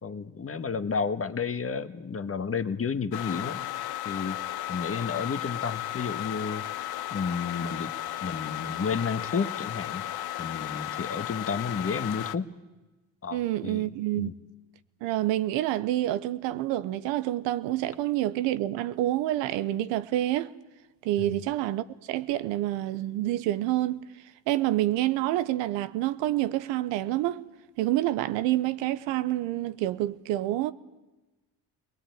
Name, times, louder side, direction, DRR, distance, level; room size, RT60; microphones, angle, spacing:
voice 1, 0.0-3.7 4.0-4.4 4.7-6.6 7.1-7.9 8.2-10.0 10.4-12.5 13.2-14.3 21.2-21.4, left 5 dB, 30° left, 1.4 m, -31 dB
sound 1, 3.1-12.4, left 14 dB, 60° left, 1.0 m, -34 dB
voice 2, 13.3-14.3 15.0-20.5 21.0-24.0 24.5-27.4 27.8-30.7, right 14 dB, 85° right, 0.9 m, -28 dB
21.0 x 19.5 x 9.3 m
supercardioid pair, 75°, 43 cm